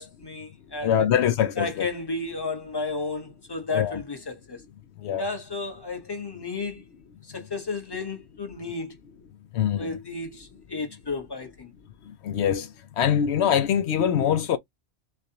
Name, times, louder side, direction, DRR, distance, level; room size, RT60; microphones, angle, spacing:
voice 1, 0.0-0.9 1.6-4.6 5.2-6.8 7.3-9.0 9.8-11.7, left 3 dB, 20° left, 1.4 m, -33 dB
voice 2, 0.8-1.9 3.7-4.0 5.0-5.2 9.5-10.0 12.2-12.7 13.0-14.6, left 9 dB, 80° left, 0.9 m, -23 dB
6.4 x 2.5 x 2.8 m
omnidirectional pair, 1.1 m